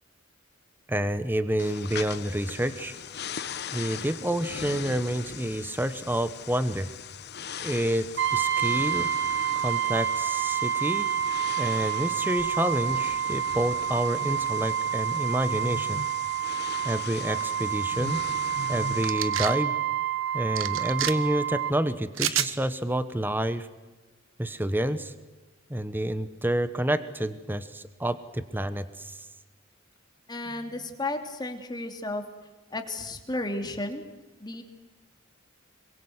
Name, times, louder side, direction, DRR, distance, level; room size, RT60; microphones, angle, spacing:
voice 1, 0.9-3.0 3.7-6.9 7.6-9.1 9.6-11.1 11.6-16.0 16.8-18.2 18.7-19.7 20.3-23.7 24.4-25.1 25.7-29.2, right 1 dB, 10° right, 12 dB, 1.0 m, -28 dB
sound 1, 1.6-19.1, left 6 dB, 55° left, 1.1 m, -39 dB
Brass instrument, 8.2-21.8, right 9 dB, 60° right, 1.4 m, -28 dB
sound 2, 19.0-19.6 20.6-21.1 22.1-22.5, right 10 dB, 80° right, 1.4 m, -28 dB
voice 2, 30.3-32.2 32.7-34.0 34.4-34.6, left 2 dB, 20° left, 5 dB, 2.9 m, -33 dB
26.0 x 23.0 x 8.0 m, 1.2 s
head